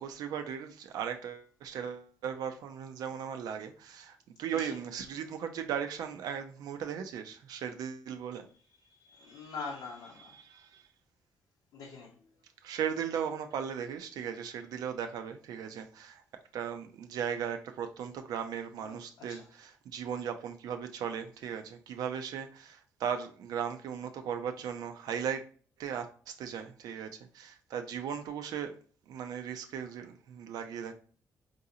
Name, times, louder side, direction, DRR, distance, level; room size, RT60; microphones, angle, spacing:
voice 1, 0.0-8.4 9.7-10.6 12.6-16.2 16.5-25.4 25.8-26.1 26.4-27.1 27.3-28.7 29.1-30.9, right 8 dB, 80° right, 0.4 m, -37 dB
voice 2, 8.9-10.4 11.7-12.1 18.8-19.5, left 4 dB, 90° left, 0.7 m, -44 dB
3.9 x 2.5 x 2.7 m
cardioid pair, 75°, 7 cm